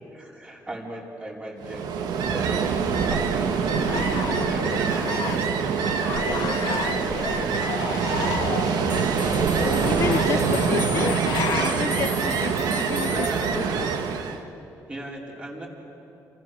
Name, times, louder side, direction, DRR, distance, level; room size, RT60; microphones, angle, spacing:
voice 1, 0.1-1.9 2.3-5.7 6.4-7.7 9.3-10.4 11.0-11.1 13.0-14.2 14.9-15.7, right 1 dB, 20° right, -2 dB, 4.6 m, -37 dB
Ocean, 1.6-14.4, right 6 dB, 90° right, 1.7 m, -25 dB
sound 1, 3.7-5.6 5.9-11.8, left 7 dB, 90° left, 2.2 m, -32 dB
sound 2, 8.9-14.1, left 5 dB, 30° left, 2.0 m, -38 dB
voice 2, 9.8-11.2 11.6-13.1 13.6-13.9, left 7 dB, 45° left, 11 dB, 0.5 m, -30 dB
28.5 x 28.0 x 7.0 m, 3.0 s
cardioid pair, 145°, 7 cm